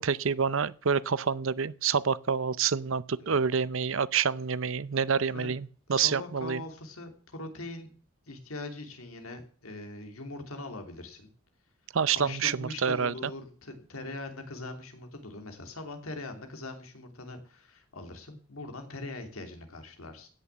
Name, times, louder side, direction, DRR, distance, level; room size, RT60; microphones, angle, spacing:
voice 1, 0.0-6.6 11.9-13.3, right 6 dB, 70° right, 0.6 m, -28 dB
voice 2, 5.9-7.9 8.3-11.3 12.1-20.3, left 2 dB, 85° left, 3.0 m, -41 dB
16.5 x 6.9 x 7.3 m
head